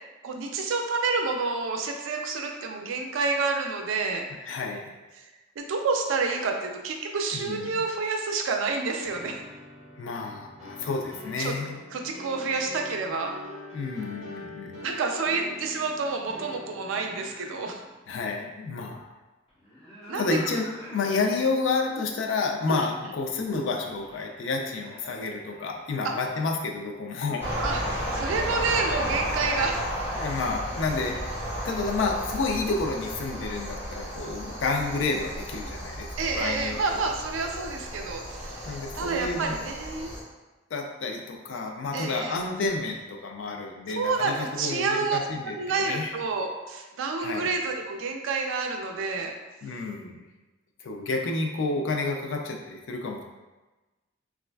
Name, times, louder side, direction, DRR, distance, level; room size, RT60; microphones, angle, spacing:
voice 1, 0.2-4.2 5.2-5.3 5.6-9.4 11.4-11.5 11.9-13.3 14.8-17.8 20.1-20.3 22.7-22.9 26.0-26.1 27.6-29.8 36.2-40.1 41.9-42.4 44.0-45.2 45.4-49.3, right 4 dB, 80° right, 3 dB, 0.4 m, -29 dB
voice 2, 4.4-4.8 7.3-7.7 10.0-11.8 13.7-14.8 18.1-19.1 20.1-27.4 30.1-31.2 31.6-37.1 38.6-39.6 40.7-46.1 47.2-47.5 49.6-50.2 50.8-53.2, left 3 dB, 70° left, 2 dB, 0.4 m, -30 dB
sound 1, 9.0-17.3, left 1 dB, 35° right, 0.7 m, -44 dB
sound 2, 16.9-18.0 19.5-21.3 21.8-21.9 23.8-26.4, left 1 dB, 30° left, 1.2 m, -46 dB
sound 3, 27.4-40.2, equal, 10° right, 1.3 m, -33 dB
3.1 x 2.4 x 2.2 m, 1.1 s
head